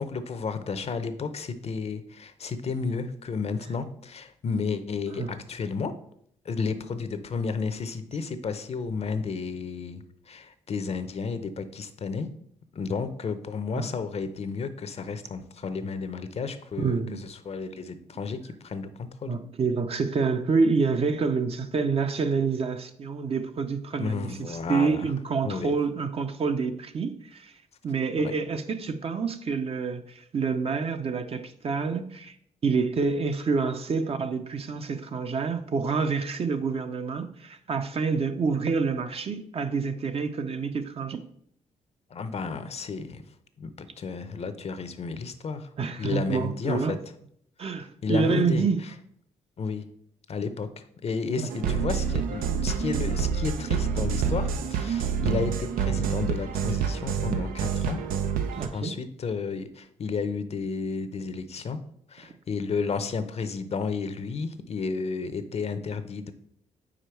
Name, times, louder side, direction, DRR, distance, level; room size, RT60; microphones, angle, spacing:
voice 1, 0.0-5.9 6.4-12.3 12.7-19.4 24.0-25.1 25.4-25.7 28.2-28.3 42.1-43.2 43.6-45.7 46.0-47.0 48.0-48.6 49.6-49.8 50.3-58.0 58.7-61.8 62.1-66.3, left 5 dB, 50° left, 0.6 m, -32 dB
voice 2, 16.8-17.3 19.3-27.5 27.8-32.3 32.6-41.2 45.8-47.0 47.6-48.8 51.4-51.8 58.5-59.0, right 5 dB, 45° right, 0.6 m, -27 dB
sound 1, 51.5-58.7, right 6 dB, 90° right, 0.5 m, -27 dB
5.0 x 4.5 x 4.4 m
cardioid pair, 65°, 14 cm